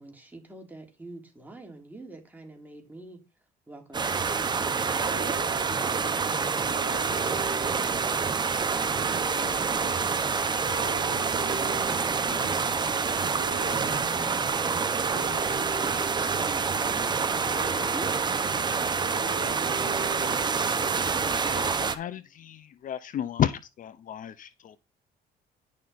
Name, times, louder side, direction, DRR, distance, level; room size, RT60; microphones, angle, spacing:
voice 1, 0.0-3.2 3.7-8.4, right 2 dB, 10° right, 3.1 m, -47 dB
sound 1, 3.9-22.0, right 5 dB, 25° right, 1.0 m, -27 dB
sound 2, 4.9-22.1, right 3 dB, 70° right, 3.8 m, -42 dB
voice 2, 21.5-24.8, left 10 dB, 50° left, 0.7 m, -33 dB
10.5 x 6.5 x 4.1 m
cardioid pair, 110°, 17 cm